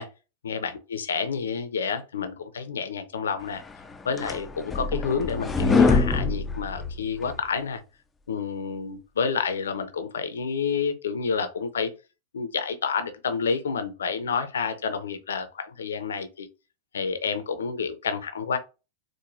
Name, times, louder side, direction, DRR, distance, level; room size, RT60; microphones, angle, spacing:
voice 1, 0.4-3.6 4.0-7.8 8.3-11.9 12.3-16.5 16.9-18.6, left 5 dB, 70° left, 0.5 m, -29 dB
sound 1, 3.7-7.4, left 4 dB, 15° left, 0.4 m, -24 dB
4.7 x 2.2 x 2.6 m
figure-of-eight pair, 90°, 0 cm